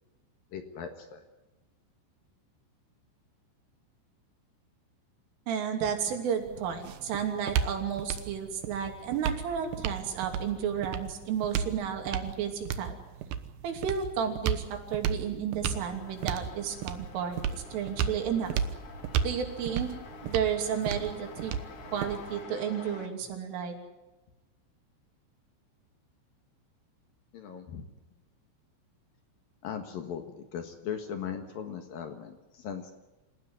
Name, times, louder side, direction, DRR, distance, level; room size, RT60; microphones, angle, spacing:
voice 1, 0.5-1.3 27.3-27.9 29.6-32.9, left 7 dB, 60° left, 6 dB, 2.8 m, -38 dB
voice 2, 5.5-13.0 13.6-18.6 19.2-19.9 20.2-21.6 21.9-23.8, right 8 dB, 90° right, 4 dB, 5.4 m, -32 dB
sound 1, 6.4-22.4, right 8 dB, 70° right, 2.2 m, -34 dB
sound 2, 15.7-23.1, left 4 dB, 45° left, 2.1 m, -48 dB
27.5 x 15.5 x 9.6 m, 1.1 s
omnidirectional pair, 5.5 m